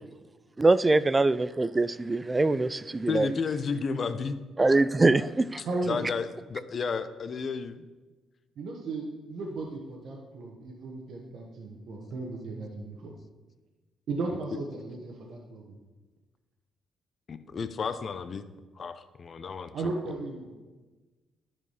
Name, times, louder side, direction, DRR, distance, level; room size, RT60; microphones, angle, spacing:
voice 1, 0.6-3.3 4.6-5.5, right 2 dB, 20° right, 16 dB, 0.3 m, -23 dB
voice 2, 3.1-4.4 5.8-7.9 17.3-18.4 18.8-20.1, left 5 dB, 45° left, 11 dB, 0.6 m, -32 dB
voice 3, 5.6-6.0 8.6-13.1 14.1-15.8 19.7-20.5, right 3 dB, 70° right, 0 dB, 1.2 m, -35 dB
11.0 x 4.9 x 5.6 m, 1.2 s
cardioid pair, 90°, 0 cm